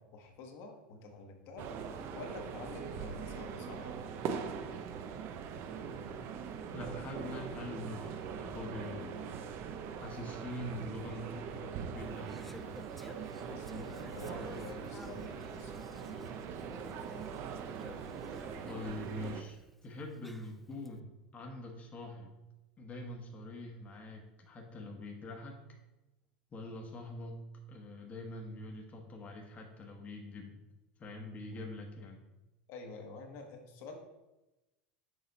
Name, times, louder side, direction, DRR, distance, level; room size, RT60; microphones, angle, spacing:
voice 1, 0.0-1.7 2.1-4.0 13.5-15.8 32.7-34.0, left 3 dB, 55° left, 2 dB, 1.2 m, -48 dB
sound 1, 1.6-19.4, right 6 dB, 50° right, 0.6 m, -42 dB
voice 2, 6.7-9.2 9.9-12.7 17.4-17.5 18.7-22.3 22.8-25.6 26.5-27.4 27.7-30.6 31.0-32.2, left 1 dB, 30° left, 1 dB, 1.1 m, -44 dB
Conversation / Chatter, 12.0-20.9, left 1 dB, ahead, 0.4 m, -53 dB
6.6 x 4.2 x 4.1 m, 1.0 s
hypercardioid pair, 100°, 5 cm